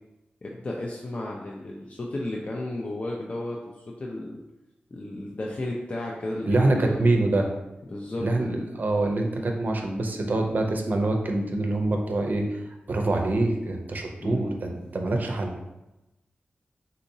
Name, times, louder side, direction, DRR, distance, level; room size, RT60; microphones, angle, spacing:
voice 1, 0.4-4.4 4.9-7.2 7.9-8.3 14.2-14.6, left 1 dB, 40° left, -2 dB, 0.4 m, -33 dB
voice 2, 6.4-7.5 8.2-12.4 12.9-15.7, right 2 dB, 55° right, 3 dB, 0.5 m, -25 dB
3.8 x 2.7 x 2.6 m, 0.98 s
wide cardioid pair, 80°, 4 cm